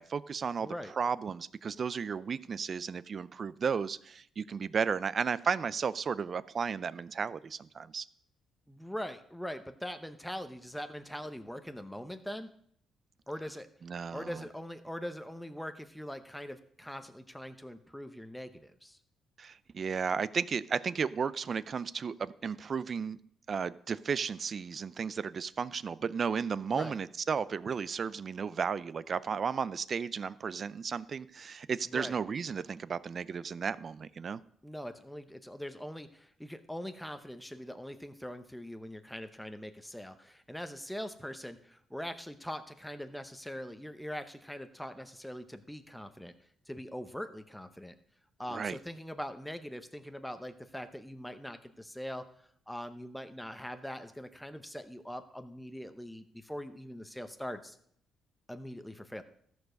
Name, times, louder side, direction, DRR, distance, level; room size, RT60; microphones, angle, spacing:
voice 1, 0.0-8.1 13.8-14.4 19.4-23.2 23.5-34.4 48.5-48.8, right 6 dB, 45° right, 18 dB, 0.4 m, -34 dB
voice 2, 0.6-0.9 8.7-12.5 13.3-13.7 14.1-19.0 26.7-27.0 31.9-32.2 34.6-46.3 46.7-47.9 48.4-52.3 52.7-57.8 58.5-59.2, equal, 5° left, 8 dB, 0.8 m, -42 dB
14.0 x 4.7 x 6.4 m, 0.66 s
cardioid pair, 90°, 0 cm